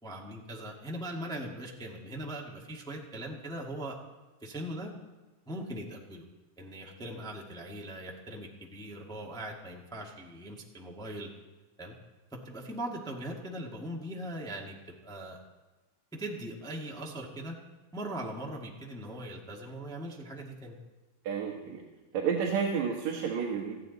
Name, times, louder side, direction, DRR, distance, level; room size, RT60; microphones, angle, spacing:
voice 1, 0.0-4.0 4.4-4.9 5.5-6.2 6.6-11.3 11.8-11.9 12.3-14.8 15.0-15.4 16.1-17.5 17.9-20.8, right 1 dB, ahead, -1 dB, 0.9 m, -40 dB
voice 2, 21.2-21.8 22.1-23.7, right 6 dB, 65° right, 0 dB, 2.7 m, -30 dB
19.0 x 14.5 x 4.1 m, 1.2 s
omnidirectional pair, 3.5 m